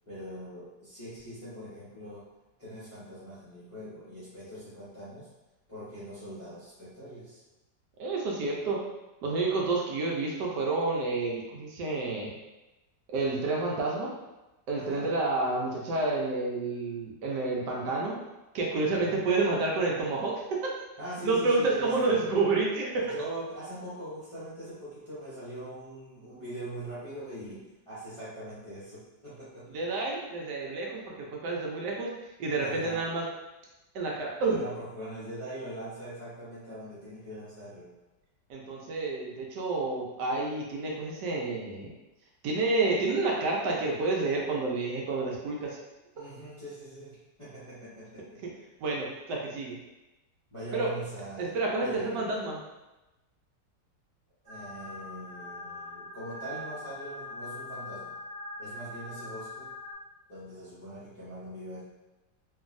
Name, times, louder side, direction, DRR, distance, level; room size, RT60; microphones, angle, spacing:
voice 1, 0.0-2.3 2.6-5.3 5.7-7.4 14.7-15.1 18.9-19.2 21.0-22.3 23.0-29.8 32.6-33.0 34.5-37.9 46.1-48.4 50.5-52.4 54.4-58.2 58.6-59.7 60.3-61.8, right 1 dB, 25° left, -13 dB, 0.7 m, -42 dB
voice 2, 8.0-8.8 9.2-12.3 13.1-14.1 14.7-18.2 18.5-20.6 21.2-23.0 29.7-32.1 32.4-33.2 33.9-34.6 38.5-41.9 42.4-45.8 48.8-49.8 50.7-50.9 51.4-52.6, right 3 dB, 75° right, -2 dB, 1.2 m, -29 dB
sound 1, 54.5-59.9, left 2 dB, 40° right, 0.7 m, -42 dB
2.9 x 2.6 x 2.5 m, 1.0 s
omnidirectional pair, 1.9 m